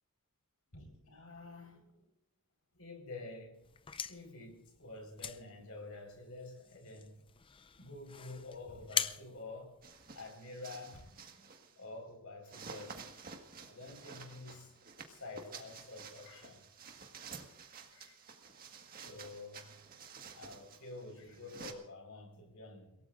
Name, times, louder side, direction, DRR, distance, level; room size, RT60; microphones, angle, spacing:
voice 1, 0.7-2.1 2.7-3.6 4.1-7.2 7.8-9.8 10.1-11.5 11.8-13.0 13.7-14.7 15.1-16.6 17.9-18.2 19.0-19.7 20.3-23.0, left 2 dB, 75° left, 4 dB, 4.5 m, -49 dB
sound 1, 3.6-10.4, left 7 dB, 25° left, 0.5 m, -43 dB
sound 2, 9.8-11.8 12.4-21.7, right 5 dB, 40° right, 1.6 m, -51 dB
30.0 x 17.5 x 2.5 m, 0.85 s
head